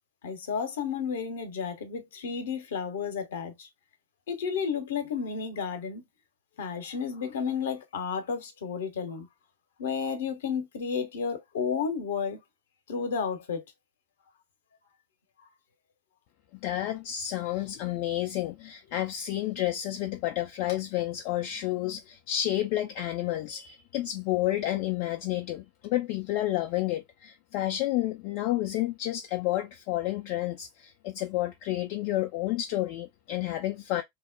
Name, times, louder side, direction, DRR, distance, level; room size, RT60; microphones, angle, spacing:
voice 1, 0.2-3.7 4.3-6.0 6.6-9.3 9.8-12.4 12.9-13.6, left 6 dB, 60° left, 0.7 m, -32 dB
voice 2, 16.6-34.0, left 14 dB, 45° left, 0.3 m, -30 dB
2.9 x 2.0 x 2.4 m
figure-of-eight pair, 90°, 0 cm